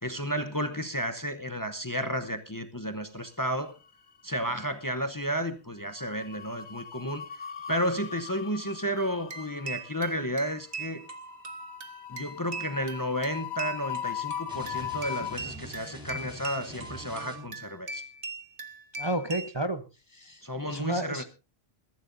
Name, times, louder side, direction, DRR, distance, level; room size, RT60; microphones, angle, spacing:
voice 1, 0.0-3.8 4.2-7.2 7.7-11.1 12.1-18.0 20.4-21.2, equal, 20° left, 0.8 m, -32 dB
sound 1, 3.3-4.1 4.4-4.6 5.8-15.4, left 10 dB, 75° left, 1.2 m, -40 dB
sound 2, 9.0-19.6, right 4 dB, 55° right, 1.5 m, -41 dB
sound 3, 14.5-17.7, left 1 dB, 5° right, 5.1 m, -44 dB
voice 2, 19.0-19.8 20.1-21.2, right 1 dB, 25° right, 0.8 m, -31 dB
21.5 x 13.5 x 2.6 m
omnidirectional pair, 1.1 m